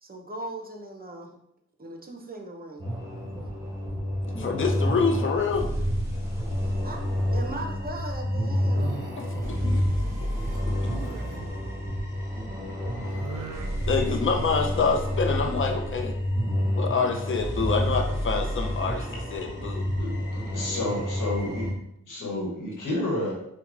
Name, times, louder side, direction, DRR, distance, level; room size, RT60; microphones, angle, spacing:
voice 1, 0.0-1.3 1.8-2.8 6.5-7.0 7.3-8.9 10.0-10.2 11.1-11.8 16.8-16.9, right 1 dB, 30° right, 2 dB, 0.6 m, -40 dB
sound 1, 2.8-21.7, equal, 10° right, 1.3 m, -29 dB
voice 2, 4.3-5.7 9.4-10.0 10.3-10.4 10.8-10.9 13.9-16.1 16.8-19.8 22.2-22.3, left 4 dB, 40° left, 3 dB, 0.6 m, -27 dB
sound 2, 4.9-5.7 6.0-6.5 8.6-11.4 13.0-14.3, right 5 dB, 80° right, 0.5 m, -43 dB
voice 3, 19.9-21.7 22.1-23.3, left 1 dB, 80° left, -2 dB, 1.1 m, -30 dB
4.5 x 2.2 x 2.5 m, 0.78 s
cardioid pair, 55°, 31 cm